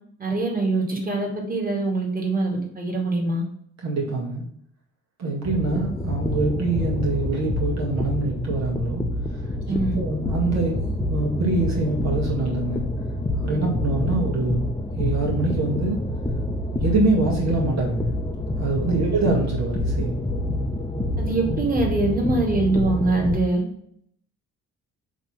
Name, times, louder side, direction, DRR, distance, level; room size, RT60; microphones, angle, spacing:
voice 1, 0.2-3.4 9.7-10.0 13.5-13.6 21.2-23.6, right 2 dB, 30° right, 0 dB, 2.5 m, -23 dB
voice 2, 3.8-4.4 5.2-9.0 9.3-9.4 9.7-12.8 13.4-14.7 15.0-16.0 16.8-18.1 18.6-20.1, right 3 dB, 60° right, -2 dB, 2.1 m, -24 dB
sound 1, 5.4-23.4, left 1 dB, 15° left, 0.8 m, -27 dB
7.1 x 3.3 x 5.6 m, 0.68 s
cardioid pair, 90°, 30 cm